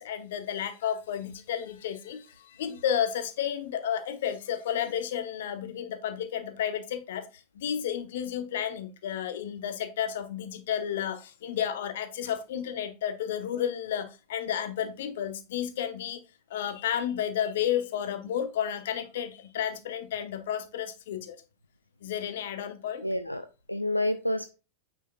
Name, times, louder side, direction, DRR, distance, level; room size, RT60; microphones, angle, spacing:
voice 1, 0.0-16.2 16.5-21.4 22.0-23.1, left 9 dB, 55° left, 0.9 m, -32 dB
voice 2, 23.0-24.6, left 1 dB, 90° left, 0.4 m, -29 dB
9.0 x 4.6 x 2.5 m
figure-of-eight pair, 90°, 0 cm